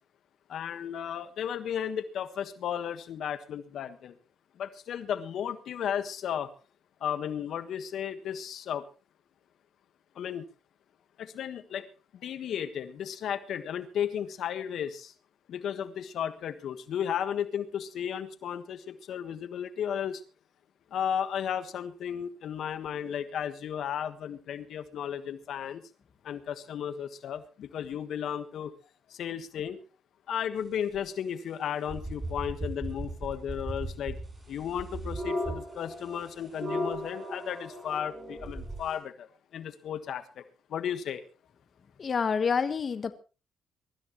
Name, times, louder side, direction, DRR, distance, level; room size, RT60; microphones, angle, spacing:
voice 1, 0.5-4.2 4.6-6.5 7.0-8.8 10.1-10.4 11.2-11.9 12.1-15.1 15.5-20.2 20.9-25.8 26.2-28.7 29.1-29.8 30.3-34.2 34.5-39.3 39.5-40.4 40.7-41.2, left 9 dB, 70° left, 11 dB, 1.4 m, -34 dB
sound 1, 30.9-31.0 31.9-39.0, equal, 25° right, 7.4 m, -36 dB
voice 2, 42.0-43.1, left 6 dB, 45° left, 10 dB, 1.3 m, -27 dB
23.5 x 13.5 x 3.1 m, 0.32 s
cardioid pair, 90°, 0 cm